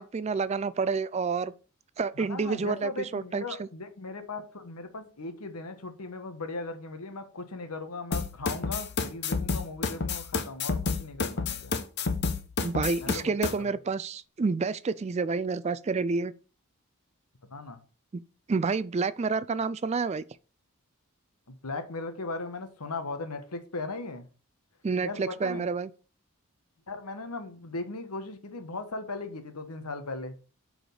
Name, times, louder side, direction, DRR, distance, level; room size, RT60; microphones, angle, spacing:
voice 1, 0.0-1.5 2.0-3.7 12.6-16.3 18.5-20.2 24.8-25.9, right 4 dB, 30° right, 0.3 m, -29 dB
voice 2, 2.1-11.8 13.0-13.7 17.5-17.8 21.5-24.3 25.0-25.7 26.9-30.3, left 3 dB, 85° left, 1.3 m, -38 dB
sound 1, 8.1-13.5, left 4 dB, 50° left, 0.9 m, -30 dB
6.2 x 4.9 x 6.6 m
head